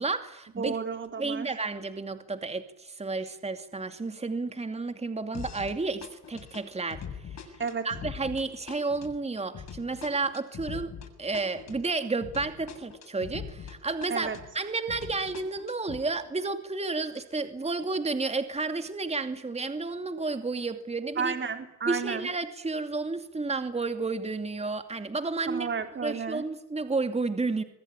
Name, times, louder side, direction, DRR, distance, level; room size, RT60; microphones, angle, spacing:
voice 1, 0.0-0.8 1.2-7.0 7.3-7.4 7.8-21.4 21.9-25.7 26.0-27.6, right 3 dB, 20° right, 8 dB, 2.6 m, -31 dB
voice 2, 0.6-1.5 7.6-7.9 14.1-14.4 21.2-22.3 25.5-26.4, right 6 dB, 40° right, 6 dB, 3.8 m, -32 dB
sound 1, 5.3-5.8 6.0-13.8 14.0-16.0, left 7 dB, 60° left, 7.2 m, -42 dB
26.0 x 21.5 x 10.0 m, 0.82 s
cardioid pair, 90°, 30 cm